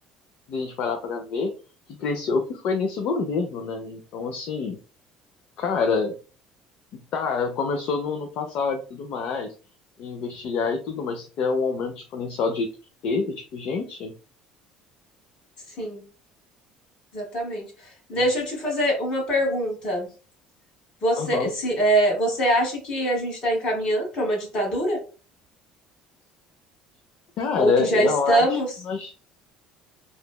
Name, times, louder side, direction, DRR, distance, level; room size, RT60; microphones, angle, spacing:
voice 1, 0.5-1.5 1.9-4.8 5.6-6.2 7.1-9.5 10.0-12.7 13.0-14.2 21.2-21.5 27.4-28.6 28.8-29.1, left 5 dB, 55° left, 5 dB, 0.4 m, -27 dB
voice 2, 17.1-20.1 21.0-25.0 27.5-28.7, right 1 dB, 35° left, 0 dB, 1.3 m, -24 dB
3.0 x 2.1 x 2.2 m, 0.36 s
cardioid pair, 145°, 2 cm